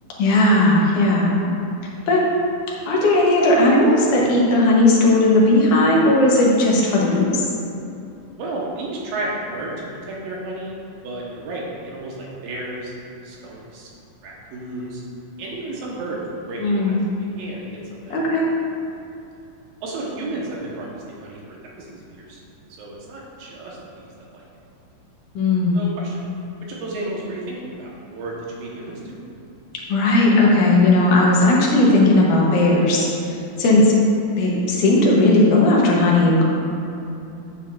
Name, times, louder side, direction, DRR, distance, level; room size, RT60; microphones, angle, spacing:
voice 1, 0.2-1.4 2.1-2.2 2.9-7.4 16.6-17.0 18.1-18.5 25.3-25.9 29.9-33.1 33.6-33.9 34.4-36.4, left 2 dB, 65° left, -3 dB, 2.4 m, -16 dB
voice 2, 8.4-10.8 11.0-12.9 13.2-13.9 14.2-15.0 15.4-18.4 19.8-22.4 22.8-24.4 25.7-26.2 26.7-29.2, right 2 dB, 75° right, -4 dB, 3.0 m, -32 dB
9.3 x 8.8 x 2.6 m, 2.8 s
omnidirectional pair, 4.3 m